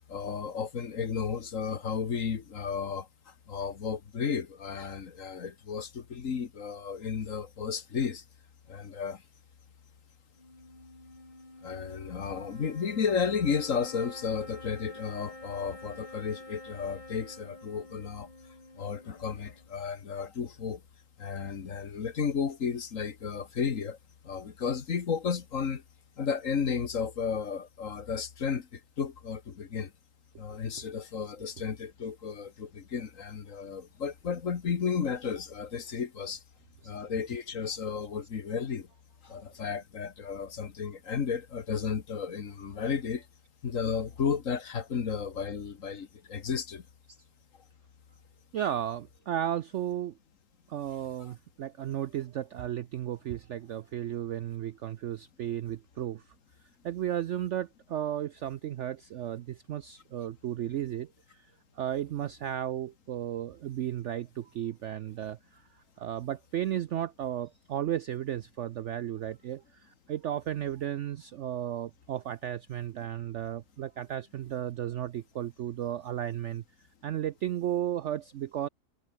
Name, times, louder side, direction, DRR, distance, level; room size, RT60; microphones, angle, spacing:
voice 1, 0.1-8.2 8.7-9.2 11.6-18.3 18.8-20.8 21.2-24.0 24.2-25.8 26.2-29.9 30.4-36.4 36.8-38.9 39.2-43.2 43.6-46.8 51.2-51.3, left 6 dB, 55° left, 1.8 m, -33 dB
sound 1, 10.3-19.8, left 1 dB, 25° left, 5.1 m, -49 dB
voice 2, 48.5-50.2 50.7-56.3 56.8-76.6 77.0-78.7, right 11 dB, 70° right, 0.7 m, -34 dB
omnidirectional pair, 1.7 m